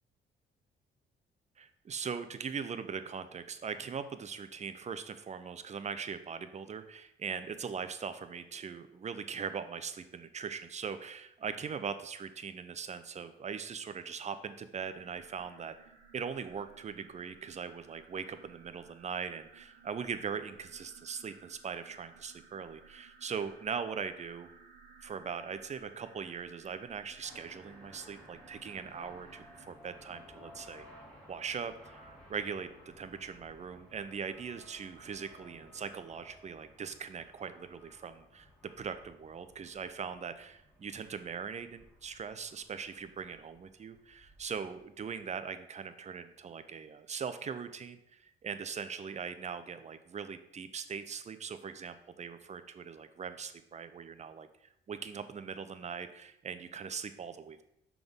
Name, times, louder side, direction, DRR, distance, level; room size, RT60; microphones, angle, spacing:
voice 1, 1.6-15.7 16.1-24.5 25.0-31.0 31.3-32.7 33.0-38.5 38.8-54.5 54.9-57.6, right 6 dB, 35° right, 10 dB, 0.6 m, -40 dB
sound 1, 14.8-29.7, right 5 dB, 65° right, 1.2 m, -59 dB
sound 2, 27.2-45.3, left 1 dB, 5° left, 1.9 m, -58 dB
5.9 x 3.6 x 5.3 m, 0.78 s
cardioid pair, 90°, 20 cm